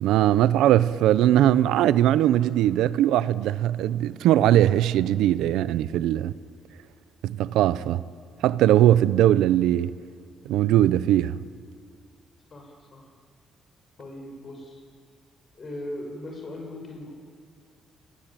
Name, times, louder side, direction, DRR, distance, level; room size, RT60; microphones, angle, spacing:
voice 1, 0.0-6.3 7.2-8.0 8.4-10.0 10.5-11.4, right 12 dB, 90° right, 0.6 m, -20 dB
voice 2, 12.5-13.1 14.0-14.8 15.5-17.1, left 1 dB, 40° left, 6.8 m, -39 dB
28.0 x 21.5 x 9.0 m
cardioid pair, 90°, 0 cm